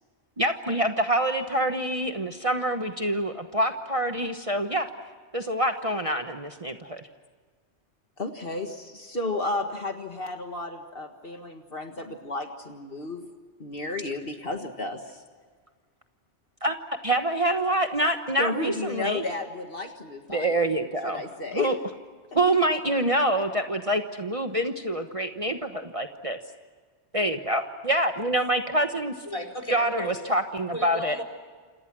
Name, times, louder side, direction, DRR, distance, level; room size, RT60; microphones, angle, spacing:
voice 1, 0.4-4.9 5.3-7.0 16.6-16.8 17.0-19.2 20.3-21.2 21.5-21.8 22.3-26.4 27.1-29.1 29.7-31.2, right 1 dB, 30° right, 5 dB, 1.2 m, -26 dB
voice 2, 8.2-13.3 13.6-15.2 18.4-20.6 21.0-21.7 22.3-22.4, left 2 dB, 55° left, 4 dB, 1.9 m, -32 dB
voice 3, 29.3-30.1 30.7-31.2, left 1 dB, 30° left, 4 dB, 4.1 m, -34 dB
28.5 x 27.5 x 6.2 m, 1.6 s
omnidirectional pair, 1.2 m